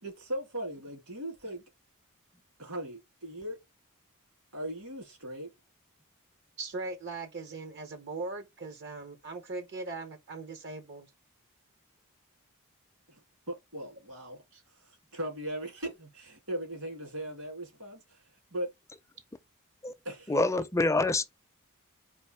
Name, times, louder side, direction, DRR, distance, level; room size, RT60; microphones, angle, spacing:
voice 1, 0.0-1.6 2.6-3.6 4.5-5.5 13.1-13.2 13.5-14.4 14.8-18.2 18.5-18.7 20.0-20.7, right 1 dB, 70° right, 2.5 m, -38 dB
voice 2, 6.6-11.1, right 3 dB, 50° right, 0.7 m, -39 dB
voice 3, 20.3-21.2, left 2 dB, 15° left, 0.5 m, -26 dB
4.4 x 2.6 x 4.4 m
head